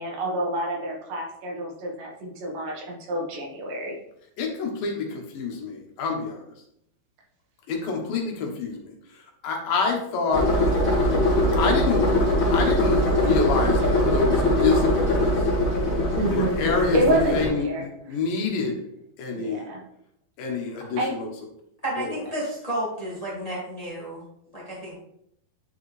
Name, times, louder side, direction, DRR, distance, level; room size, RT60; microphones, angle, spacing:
voice 1, 0.0-4.0 16.1-18.2 19.3-19.8 21.0-21.1, right 1 dB, 70° right, -1 dB, 2.8 m, -28 dB
voice 2, 4.4-6.5 7.7-8.9 9.4-10.5 11.5-12.1 12.5-13.8 14.1-15.3 16.3-17.0 17.3-18.7 19.2-19.6 20.4-21.3 22.0-22.1, left 4 dB, 75° left, 1 dB, 2.8 m, -27 dB
sound 1, 10.3-17.5, left 1 dB, 40° left, 1.3 m, -22 dB
voice 3, 21.8-24.2 24.5-25.0, right 1 dB, 15° left, -6 dB, 1.2 m, -31 dB
9.5 x 4.7 x 3.2 m, 0.74 s
omnidirectional pair, 4.2 m